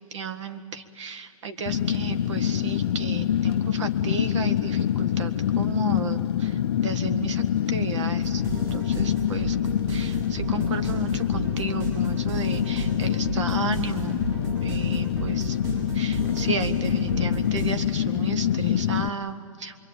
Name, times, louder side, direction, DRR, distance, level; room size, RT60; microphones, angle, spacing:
voice 1, 0.0-9.6 9.9-14.3 14.6-15.6 15.9-19.8, right 6 dB, 55° right, 10 dB, 1.7 m, -34 dB
Fire, 1.7-19.1, left 10 dB, 45° left, 0.6 m, -25 dB
sound 1, 8.2-17.7, right 4 dB, 30° right, 6.9 m, -35 dB
27.0 x 23.0 x 8.9 m, 2.4 s
hypercardioid pair, 160°, 18 cm